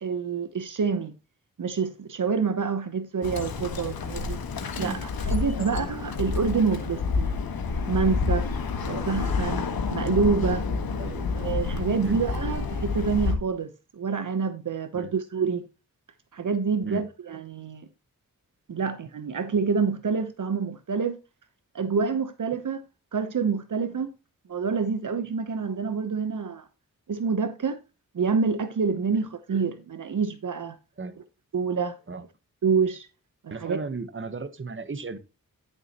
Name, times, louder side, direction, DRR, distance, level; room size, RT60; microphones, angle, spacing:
voice 1, 0.0-1.1 1.6-4.4 4.8-7.4 7.9-8.5 8.9-10.6 11.3-15.6 16.3-17.9 18.7-21.2 21.7-22.8 23.1-24.1 24.5-26.7 27.1-27.8 28.1-30.8 31.5-32.0 32.6-33.1 33.4-33.8, right 5 dB, 60° right, 1.0 m, -27 dB
Bird, 3.2-13.3, left 4 dB, 90° left, 1.6 m, -29 dB
voice 2, 11.0-11.3 12.0-12.2 14.9-15.1 16.8-17.0 31.0-31.2 32.1-32.2 33.5-35.2, right 4 dB, 35° right, 1.1 m, -35 dB
11.5 x 6.9 x 3.0 m
cardioid pair, 65°, 35 cm